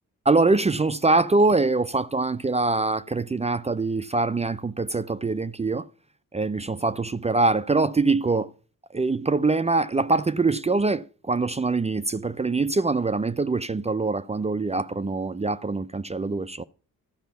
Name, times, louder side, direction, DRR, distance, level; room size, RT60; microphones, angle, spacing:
voice 1, 0.3-5.9 6.3-8.5 8.9-16.6, right 3 dB, 20° right, 0.4 m, -24 dB
12.5 x 5.1 x 6.9 m
cardioid pair, 75°, 33 cm